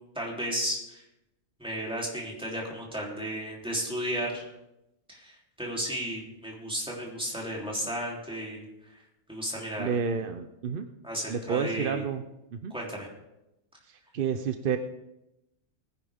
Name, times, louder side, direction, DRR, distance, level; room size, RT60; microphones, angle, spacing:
voice 1, 0.1-1.0 1.6-4.5 5.1-9.0 9.3-9.9 11.0-12.0 12.7-13.1, equal, 5° right, -3 dB, 3.3 m, -34 dB
voice 2, 9.8-10.9 11.3-12.2 12.5-12.7 13.9-14.8, right 6 dB, 50° right, 7 dB, 0.7 m, -30 dB
19.0 x 10.5 x 3.6 m, 0.90 s
omnidirectional pair, 1.4 m